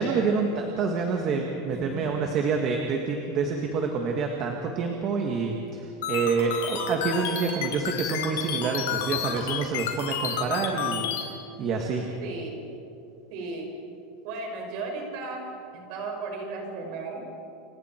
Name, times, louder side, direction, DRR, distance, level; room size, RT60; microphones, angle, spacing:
voice 1, 0.0-12.1, right 5 dB, 30° right, 2 dB, 1.7 m, -27 dB
voice 2, 1.7-2.1 12.2-12.6 13.3-13.7 14.2-15.5 15.9-17.2, right 3 dB, 45° right, 1 dB, 5.6 m, -35 dB
sound 1, 6.0-11.2, left 8 dB, 80° left, 3.8 m, -30 dB
29.5 x 25.0 x 4.5 m, 2.6 s
supercardioid pair, 175°, 0 cm